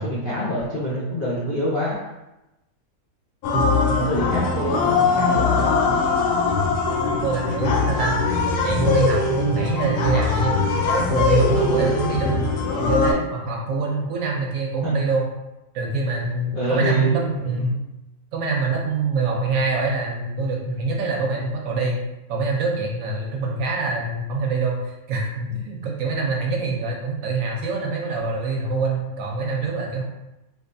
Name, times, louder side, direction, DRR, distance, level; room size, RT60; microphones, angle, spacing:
voice 1, 0.0-2.0 3.9-5.8 14.8-14.9 16.5-17.8, right 1 dB, 60° left, -7 dB, 0.5 m, -26 dB
sound 1, 3.4-13.1, left 4 dB, 85° left, 1.1 m, -21 dB
voice 2, 7.2-8.2 8.6-12.4 12.8-15.2 15.7-17.7 18.3-22.0 22.3-30.0, right 3 dB, 65° right, -1 dB, 1.0 m, -25 dB
3.2 x 3.0 x 2.6 m, 0.97 s
omnidirectional pair, 1.6 m